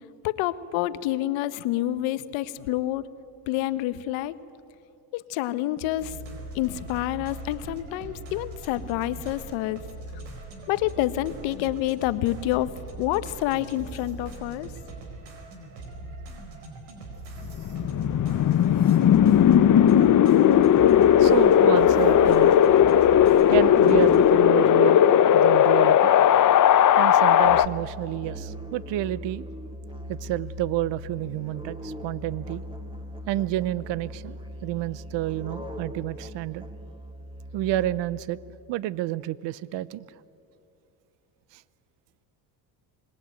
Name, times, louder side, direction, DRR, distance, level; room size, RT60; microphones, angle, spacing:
voice 1, 0.2-3.0 3.5-4.4 5.1-6.1 6.5-9.8 10.7-12.7 13.0-14.7, left 15 dB, 80° left, 14 dB, 1.2 m, -28 dB
sound 1, 6.0-24.2, right 2 dB, 85° right, 4.9 m, -41 dB
Wind, 17.4-27.7, left 10 dB, 40° left, 0.9 m, -17 dB
voice 2, 21.2-22.5 23.5-26.1 27.0-29.5 30.1-32.6 33.3-36.7 37.5-38.4 38.7-40.0 41.5-41.6, right 14 dB, 65° right, 19 dB, 0.9 m, -29 dB
Musical instrument, 27.4-38.2, equal, 10° right, 3.4 m, -40 dB
26.5 x 21.0 x 9.2 m, 2.7 s
supercardioid pair, 85°, 46 cm